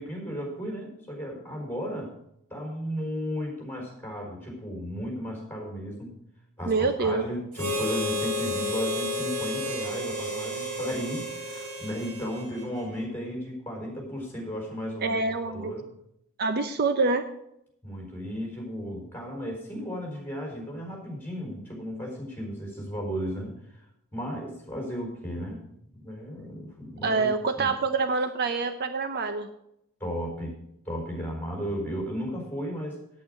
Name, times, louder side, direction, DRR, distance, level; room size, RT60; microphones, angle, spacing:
voice 1, 0.0-2.1 2.5-6.2 6.6-15.9 17.8-23.9 24.1-27.7 30.0-30.6 30.8-33.0, equal, 10° left, -1 dB, 4.3 m, -35 dB
voice 2, 6.7-7.2 15.0-15.7 16.4-17.3 27.0-29.5, right 4 dB, 45° right, 9 dB, 0.7 m, -26 dB
Harmonica, 7.5-13.0, left 1 dB, 80° right, 2.9 m, -32 dB
9.2 x 8.6 x 6.5 m, 0.78 s
head